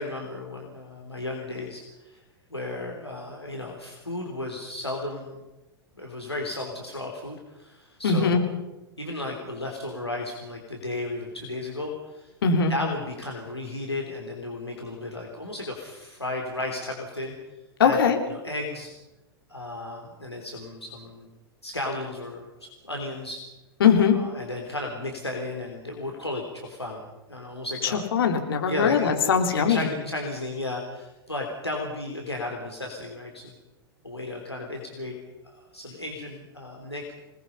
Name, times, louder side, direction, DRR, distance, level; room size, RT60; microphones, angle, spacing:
voice 1, 0.0-2.2 2.5-5.4 5.9-8.5 9.0-12.3 12.7-17.3 17.8-18.0 18.3-18.9 19.5-21.3 21.6-23.5 24.1-28.1 28.7-29.1 29.5-33.5 34.0-35.2 35.4-37.1, left 2 dB, 85° left, 0 dB, 3.6 m, -34 dB
voice 2, 8.0-8.4 12.4-12.7 17.8-18.2 23.8-24.2 28.1-29.9, left 6 dB, 65° left, 4 dB, 3.5 m, -20 dB
27.5 x 19.5 x 5.6 m, 1.0 s
figure-of-eight pair, 95°, 13 cm